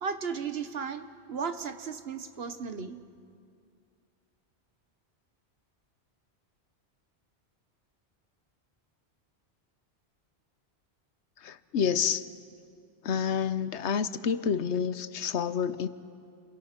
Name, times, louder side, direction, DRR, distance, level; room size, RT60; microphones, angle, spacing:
voice 1, 0.0-3.0, right 6 dB, 65° right, 9 dB, 1.3 m, -35 dB
voice 2, 11.4-12.2 13.0-15.9, left 7 dB, 85° left, 13 dB, 1.1 m, -29 dB
30.0 x 28.5 x 6.0 m, 2.4 s
omnidirectional pair, 1.1 m